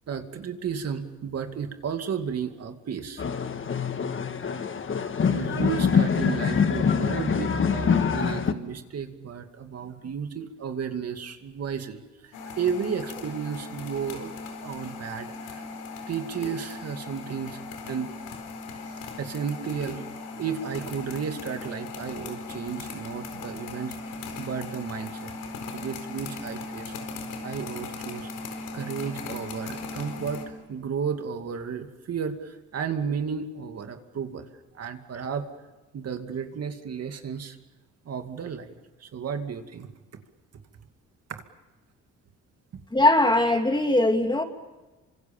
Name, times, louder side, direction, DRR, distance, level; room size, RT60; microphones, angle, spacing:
voice 1, 0.1-3.3 5.3-14.3 14.6-15.7 16.1-17.6 17.9-18.1 18.8-20.1 20.4-25.3 25.7-27.2 27.4-28.3 28.7-34.5 34.7-35.5 35.9-37.6 38.0-39.9 41.3-41.4, right 7 dB, 55° right, 6 dB, 2.4 m, -33 dB
sound 1, 3.2-8.5, left 6 dB, 40° left, 1.6 m, -25 dB
sound 2, 12.3-30.5, left 3 dB, 90° left, 4.4 m, -38 dB
voice 2, 42.9-44.4, left 1 dB, 15° left, 5 dB, 2.8 m, -20 dB
27.5 x 25.5 x 7.2 m, 1.2 s
cardioid pair, 90°, 30 cm